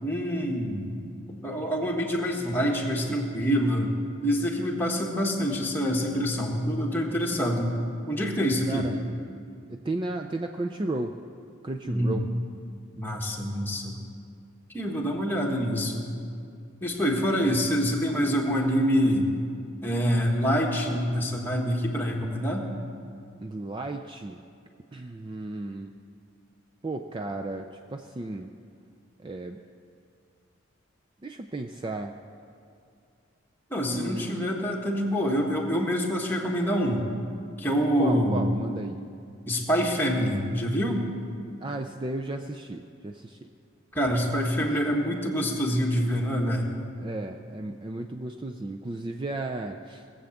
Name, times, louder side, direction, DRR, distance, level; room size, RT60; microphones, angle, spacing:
voice 1, 0.0-0.9 1.3-3.9 4.2-7.7 8.0-8.9 11.8-12.2 12.9-14.0 14.7-16.1 16.8-19.3 19.8-22.7 33.7-37.0 37.6-38.5 39.5-41.1 43.9-46.7, equal, 10° left, -1 dB, 1.5 m, -26 dB
voice 2, 8.7-9.3 9.7-11.2 11.6-12.3 23.4-24.4 24.9-25.9 26.8-28.5 29.2-29.6 31.2-32.1 33.8-34.4 38.0-39.0 41.6-43.5 44.6-44.7 47.0-50.1, right 2 dB, 25° right, 4 dB, 0.4 m, -34 dB
19.0 x 7.8 x 7.2 m, 2.4 s
head